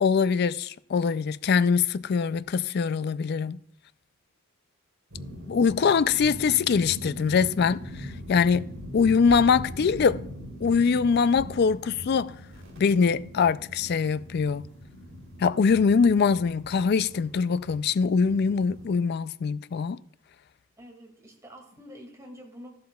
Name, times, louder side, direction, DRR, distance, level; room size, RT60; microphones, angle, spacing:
voice 1, 0.0-3.6 5.5-10.2 10.6-12.4 12.8-14.6 15.4-20.0, left 5 dB, 50° left, 0.3 m, -23 dB
sound 1, 5.1-18.9, equal, 70° right, 4.0 m, -41 dB
voice 2, 20.8-22.7, equal, 15° right, 2.1 m, -47 dB
13.5 x 11.5 x 2.3 m
head